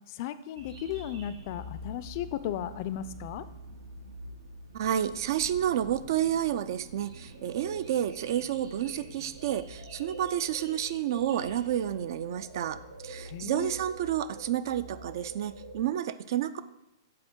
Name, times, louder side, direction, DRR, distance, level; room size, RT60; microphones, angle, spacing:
voice 1, 0.1-3.4 13.3-13.7, left 10 dB, 45° left, 13 dB, 0.3 m, -35 dB
sound 1, 0.6-15.8, right 1 dB, 90° right, 1.3 m, -46 dB
voice 2, 4.7-12.8 13.0-16.6, right 10 dB, 55° right, 14 dB, 0.3 m, -30 dB
7.7 x 4.2 x 3.7 m, 0.94 s
hypercardioid pair, 145°, 2 cm